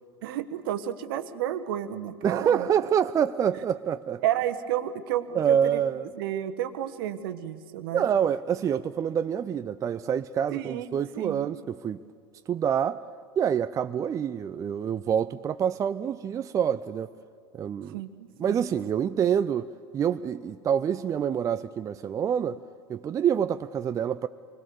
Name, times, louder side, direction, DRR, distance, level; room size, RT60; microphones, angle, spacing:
voice 1, 0.2-2.7 4.2-5.8 6.1-8.0 10.5-10.9 11.1-11.5 17.9-18.6, right 11 dB, 60° right, 1.3 m, -31 dB
voice 2, 2.2-4.2 5.3-6.1 7.9-12.0 12.5-13.0 13.4-17.1 17.5-18.0 18.4-22.6 22.9-24.3, right 8 dB, 25° right, 0.5 m, -26 dB
26.0 x 21.0 x 6.9 m
figure-of-eight pair, 85°, 13 cm